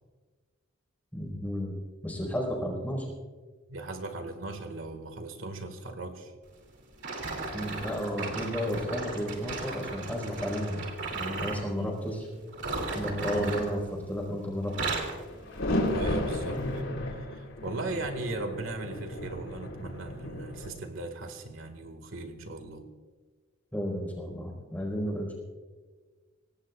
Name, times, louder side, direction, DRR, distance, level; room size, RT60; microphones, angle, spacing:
voice 1, 1.1-1.7 2.0-3.0 7.5-10.8 11.2-12.3 12.9-13.8 14.1-14.7 23.7-25.4, equal, 10° left, -1 dB, 4.4 m, -32 dB
voice 2, 3.7-6.3 11.8-11.9 13.3-13.6 15.8-16.6 17.1-22.9, right 2 dB, 90° right, 7 dB, 1.9 m, -38 dB
sound 1, 7.0-11.7 12.5-14.3 14.6-15.2 15.8-16.0 16.7-16.8, right 3 dB, 60° right, 2.7 m, -36 dB
sound 2, 15.1-20.7, left 1 dB, 85° left, 3.4 m, -33 dB
25.0 x 18.0 x 2.4 m, 1.4 s
head